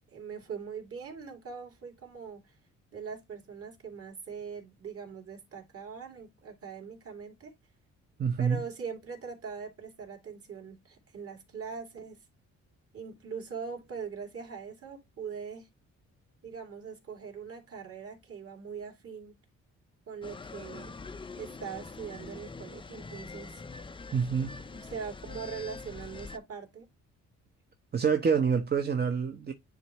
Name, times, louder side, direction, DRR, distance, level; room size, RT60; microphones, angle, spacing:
voice 1, 0.1-2.6 2.9-7.5 8.4-12.2 12.9-15.7 16.4-19.4 20.1-21.0 21.3-23.6 24.7-26.9, right 6 dB, 50° right, 2.9 m, -42 dB
voice 2, 8.2-8.6 24.1-24.5 27.9-29.5, right 6 dB, 35° right, 0.9 m, -27 dB
sound 1, 20.2-26.4, left 4 dB, 15° left, 0.5 m, -44 dB
10.0 x 3.4 x 3.0 m
cardioid pair, 90°, 30 cm